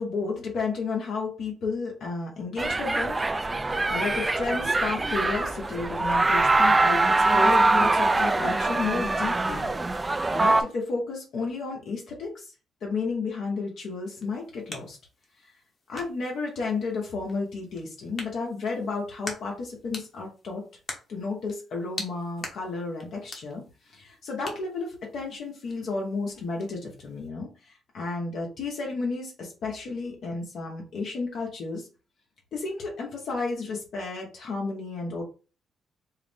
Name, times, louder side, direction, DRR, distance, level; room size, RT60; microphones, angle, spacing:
voice 1, 0.0-9.7 10.4-12.5 12.8-15.0 15.9-20.6 21.1-31.9 32.5-35.2, left 4 dB, 70° left, -1 dB, 1.1 m, -32 dB
sound 1, 2.6-10.6, right 2 dB, 20° right, 0.4 m, -23 dB
sound 2, 14.0-27.3, left 2 dB, 40° left, 1.2 m, -45 dB
4.6 x 2.1 x 3.5 m, 0.34 s
cardioid pair, 90°, 0 cm